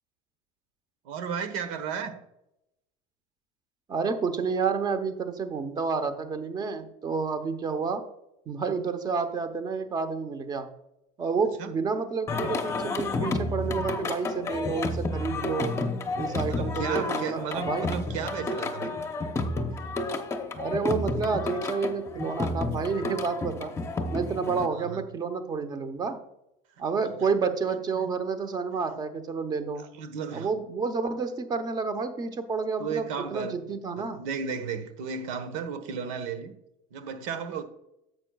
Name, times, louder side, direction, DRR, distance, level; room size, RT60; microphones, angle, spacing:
voice 1, 1.0-2.2 11.6-11.7 16.5-19.0 24.7-25.0 26.8-27.1 27.7-28.1 29.8-30.5 32.8-33.5 34.0-36.6 36.9-37.6, right 6 dB, 75° right, 1.3 m, -34 dB
voice 2, 3.9-8.0 8.5-10.7 11.2-15.8 16.2-17.9 20.6-23.7 24.1-26.2 26.8-29.8 30.3-34.2, right 5 dB, 25° right, 0.9 m, -30 dB
Singing, 12.3-24.7, left 2 dB, 15° left, 0.9 m, -31 dB
11.0 x 7.8 x 2.4 m
supercardioid pair, 140°, 17 cm